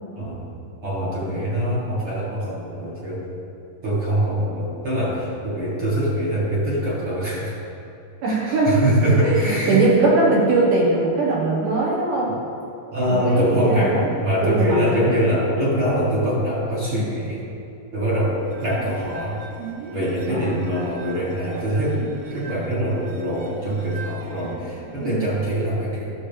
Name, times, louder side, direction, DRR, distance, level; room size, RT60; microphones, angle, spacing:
voice 1, 0.8-3.3 3.8-7.5 8.5-9.9 12.9-17.4 17.9-18.4 18.6-19.4 19.9-22.0 22.3-26.1, equal, 45° right, -7 dB, 2.0 m, -23 dB
voice 2, 8.2-8.8 9.2-12.3 13.1-14.1 14.4-15.0 20.3-20.6 25.0-25.2, right 3 dB, 70° right, -5 dB, 2.8 m, -20 dB
sound 1, 18.3-25.1, right 4 dB, 85° right, 1.4 m, -38 dB
13.0 x 6.5 x 3.3 m, 2.7 s
omnidirectional pair, 3.9 m